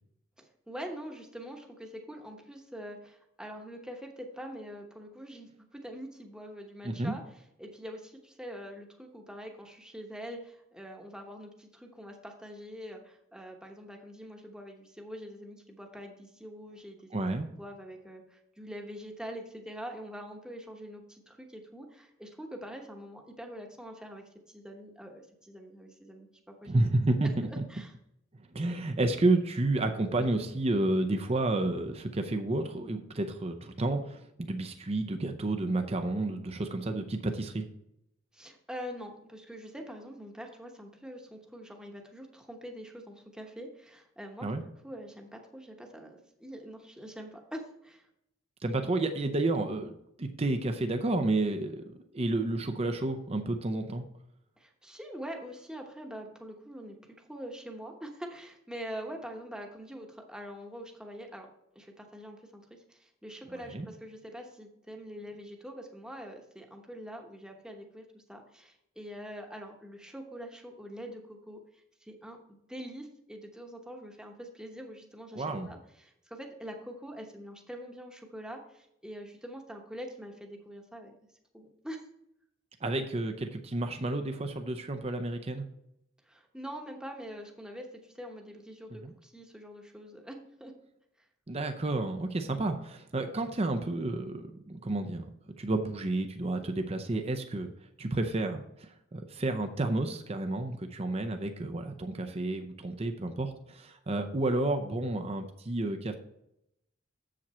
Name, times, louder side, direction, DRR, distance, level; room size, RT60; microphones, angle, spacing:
voice 1, 0.4-7.2 7.6-26.8 27.2-27.3 27.7-27.9 38.3-44.5 44.8-48.1 54.6-61.5 61.7-81.1 81.5-82.0 86.2-90.7, equal, 5° right, 2 dB, 1.0 m, -44 dB
voice 2, 17.1-17.5 26.6-27.6 28.5-37.7 44.4-44.6 48.6-54.0 63.7-63.9 75.4-75.7 82.8-85.6 88.9-89.1 91.5-95.3 95.6-97.7 98.0-106.1, right 2 dB, 30° right, 6 dB, 0.6 m, -31 dB
7.5 x 7.3 x 4.3 m, 0.80 s
head